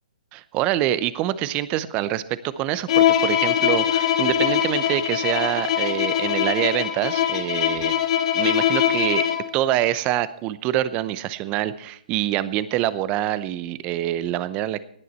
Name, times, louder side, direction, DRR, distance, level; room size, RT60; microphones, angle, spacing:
voice 1, 0.3-7.9 8.3-9.2 9.5-14.8, right 13 dB, 25° right, 16 dB, 0.7 m, -25 dB
Bowed string instrument, 2.9-9.6, left 10 dB, 50° left, 1.7 m, -22 dB
18.5 x 9.4 x 4.3 m, 0.68 s
hypercardioid pair, 135°, 4 cm